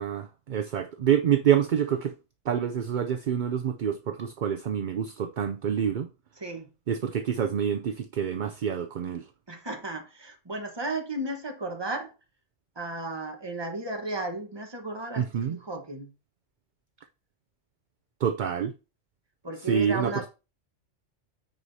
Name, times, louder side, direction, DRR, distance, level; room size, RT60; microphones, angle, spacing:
voice 1, 0.0-2.1 2.5-6.1 6.9-9.3 15.2-15.6 18.2-18.7 19.7-20.3, right 8 dB, 55° right, 0.6 m, -27 dB
voice 2, 6.4-6.7 9.5-12.1 12.7-16.1 19.4-20.3, right 2 dB, 20° right, 1.3 m, -34 dB
14.0 x 4.8 x 2.7 m
omnidirectional pair, 1.2 m